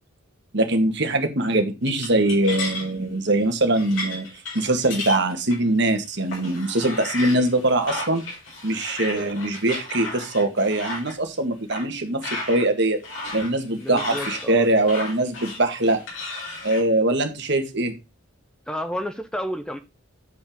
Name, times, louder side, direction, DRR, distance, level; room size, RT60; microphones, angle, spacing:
voice 1, 0.5-4.3 4.5-8.2 8.6-12.2 12.5-13.0 13.3-16.0 16.6-17.9, right 2 dB, 60° right, 5 dB, 1.9 m, -22 dB
sound 1, 1.9-2.9 3.4-3.5 3.7-5.9 6.3-11.1 11.7-11.8 12.2-12.6 13.0-16.8, left 2 dB, 80° left, 4.8 m, -34 dB
voice 2, 13.8-14.7 18.7-19.8, equal, 5° left, 9 dB, 0.6 m, -31 dB
8.2 x 5.4 x 5.3 m, 0.26 s
head